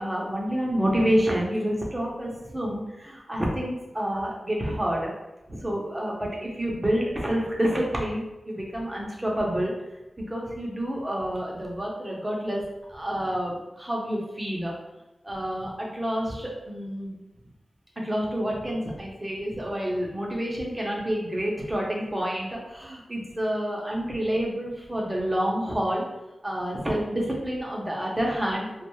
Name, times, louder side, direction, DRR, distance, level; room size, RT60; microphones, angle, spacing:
voice 1, 0.0-5.1 5.5-9.7 10.3-12.6 12.9-14.7 15.2-17.2 18.0-26.0 26.4-28.8, equal, 20° right, -3 dB, 0.7 m, -28 dB
2.4 x 2.2 x 3.0 m, 1.0 s
wide cardioid pair, 70°, 0 cm